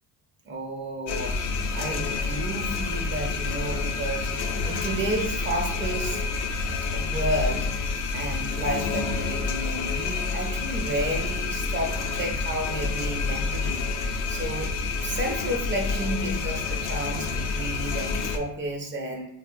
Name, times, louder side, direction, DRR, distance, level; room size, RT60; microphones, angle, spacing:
voice 1, 0.4-1.3 1.7-4.3 4.6-6.2 6.9-7.7 8.1-14.7 15.0-19.3, right 1 dB, 25° right, 2 dB, 0.6 m, -31 dB
sound 1, 1.1-18.4, left 4 dB, 50° left, 0.5 m, -28 dB
3.5 x 2.0 x 2.5 m, 0.75 s
supercardioid pair, 110°, 43 cm